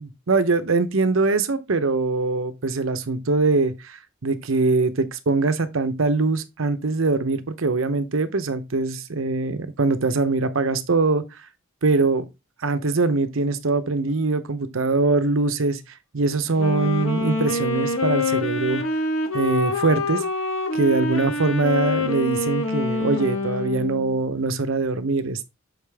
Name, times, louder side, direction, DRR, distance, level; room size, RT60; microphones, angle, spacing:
voice 1, 0.3-11.2 11.8-12.2 12.6-15.8 16.1-18.8 19.3-20.2 20.7-25.4, right 3 dB, 70° right, 0.8 m, -22 dB
Wind instrument woodwind instrument, 16.5-24.2, left 2 dB, 80° left, 1.3 m, -26 dB
6.4 x 5.0 x 3.5 m
head